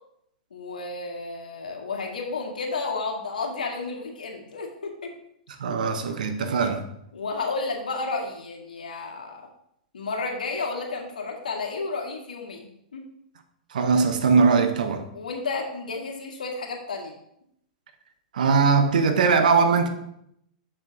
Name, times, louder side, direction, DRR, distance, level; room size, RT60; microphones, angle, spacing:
voice 1, 0.5-5.1 7.1-9.5 9.9-12.7 12.9-13.0 15.1-17.1, left 3 dB, 85° left, 1.9 m, -32 dB
voice 2, 5.6-6.8 13.7-15.1 18.3-19.9, right 5 dB, 75° right, 1.2 m, -20 dB
7.2 x 6.1 x 4.0 m
hypercardioid pair, 115°, 4 cm